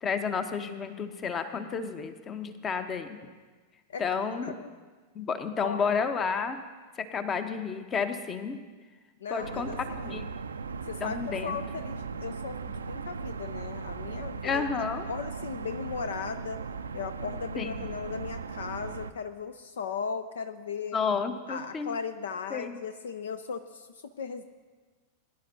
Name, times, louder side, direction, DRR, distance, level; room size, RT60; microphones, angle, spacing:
voice 1, 0.0-3.2 4.0-4.5 5.1-6.6 7.0-8.6 9.3-10.3 11.0-11.6 14.4-15.1 17.6-17.9 20.9-21.9 22.5-22.8, left 5 dB, 25° left, 9 dB, 0.8 m, -31 dB
voice 2, 5.6-5.9 9.2-10.2 10.9-14.7 15.1-16.6 16.9-21.0 21.5-23.9 24.2-24.4, left 6 dB, 65° left, 11 dB, 0.4 m, -37 dB
sound 1, 9.4-19.1, right 5 dB, 70° right, 0.4 m, -38 dB
21.0 x 10.5 x 2.7 m, 1.4 s
figure-of-eight pair, 90°, 0 cm